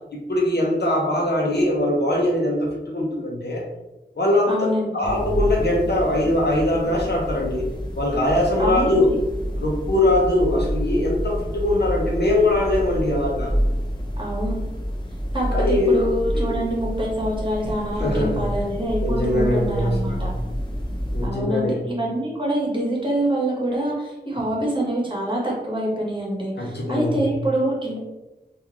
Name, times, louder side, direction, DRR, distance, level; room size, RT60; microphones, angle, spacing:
voice 1, 0.1-3.6 4.2-7.6 7.9-9.1 9.6-13.5 15.5-16.1 16.3-16.6 18.0-18.5 19.0-20.3 21.1-21.8 26.6-27.2, left 1 dB, 75° left, -2 dB, 0.8 m, -22 dB
voice 2, 4.5-5.0 8.6-9.1 14.2-14.6 15.3-20.3 21.2-28.0, right 1 dB, 30° right, -3 dB, 1.2 m, -25 dB
sound 1, 5.0-21.3, equal, 25° left, 0.8 m, -28 dB
3.6 x 2.5 x 2.9 m, 1.0 s
wide cardioid pair, 50°, 18 cm